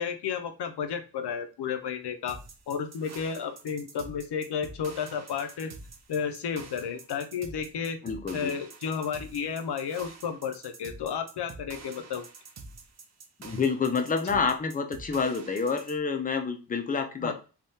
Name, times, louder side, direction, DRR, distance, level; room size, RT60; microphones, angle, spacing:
voice 1, 0.0-2.4 2.7-5.7 6.1-8.0 8.3-12.2 14.3-14.4 17.2-17.3, left 7 dB, 70° left, 7 dB, 0.6 m, -32 dB
sound 1, 2.3-16.0, right 4 dB, 40° right, 0.4 m, -47 dB
voice 2, 8.0-8.5 13.4-17.3, left 5 dB, 20° left, 6 dB, 0.4 m, -28 dB
3.5 x 2.3 x 2.7 m, 0.33 s
wide cardioid pair, 150°, 42 cm